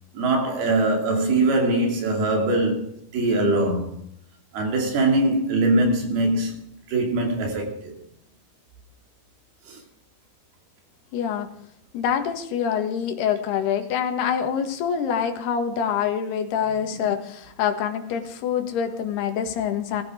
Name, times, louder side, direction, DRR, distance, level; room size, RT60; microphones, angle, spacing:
voice 1, 0.1-2.9 3.1-3.9 4.5-8.0 9.7-9.8 16.9-17.2, right 2 dB, 75° right, 4.7 m, -22 dB
voice 2, 11.1-11.5 11.9-20.0, left 8 dB, 85° left, 3.6 m, -25 dB
18.5 x 14.5 x 5.0 m
omnidirectional pair, 4.5 m